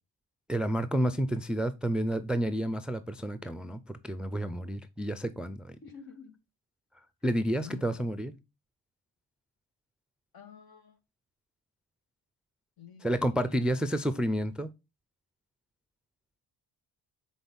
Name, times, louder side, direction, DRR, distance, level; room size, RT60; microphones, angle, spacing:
voice 1, 0.5-5.7 7.2-8.3 13.0-14.7, equal, ahead, 0.4 m, -30 dB
voice 2, 5.8-6.4 7.6-8.1 10.3-11.0 12.8-13.7, left 7 dB, 65° left, 1.9 m, -49 dB
6.1 x 4.3 x 5.3 m
cardioid pair, 110°, 39 cm